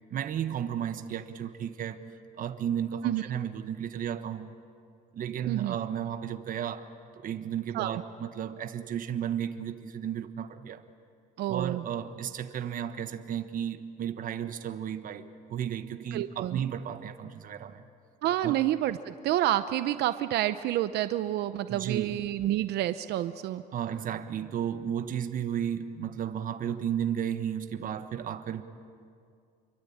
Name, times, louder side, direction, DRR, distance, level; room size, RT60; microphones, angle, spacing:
voice 1, 0.1-2.0 2.4-4.5 5.1-6.9 7.1-10.8 11.5-17.8 18.4-18.6 21.7-22.2 23.7-28.6, right 9 dB, 55° right, 9 dB, 1.4 m, -33 dB
voice 2, 11.4-11.8 16.1-16.6 18.2-23.6, right 13 dB, 75° right, 12 dB, 0.8 m, -29 dB
27.5 x 23.5 x 8.7 m, 2.3 s
cardioid pair, 110°, 17 cm